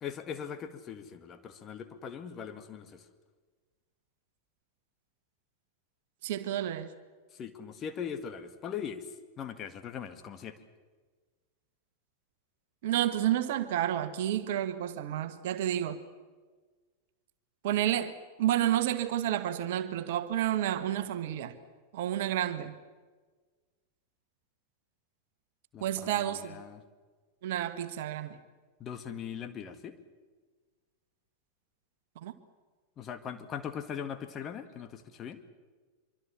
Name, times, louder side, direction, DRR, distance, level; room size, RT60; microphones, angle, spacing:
voice 1, 0.0-3.1 7.3-10.6 25.7-26.8 28.8-29.9 33.0-35.4, left 8 dB, 30° left, 9 dB, 1.9 m, -40 dB
voice 2, 6.2-6.9 12.8-16.0 17.6-21.6 21.9-22.7 25.8-26.6 27.4-28.4 32.1-32.3, right 12 dB, 55° right, 11 dB, 1.5 m, -30 dB
25.0 x 24.5 x 7.2 m, 1.4 s
figure-of-eight pair, 90°, 0 cm